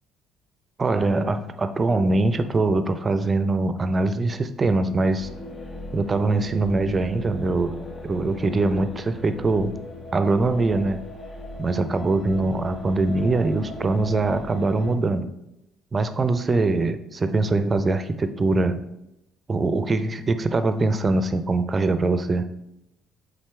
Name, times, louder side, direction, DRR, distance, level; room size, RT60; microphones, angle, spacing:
voice 1, 0.8-5.3 5.9-7.7 8.0-9.7 10.1-11.0 11.6-15.3 15.9-18.8 19.5-22.5, right 3 dB, 30° right, 10 dB, 0.5 m, -23 dB
sound 1, 5.2-15.0, left 2 dB, 35° left, 0.8 m, -38 dB
7.3 x 4.2 x 3.3 m, 0.86 s
hypercardioid pair, 55°, 0 cm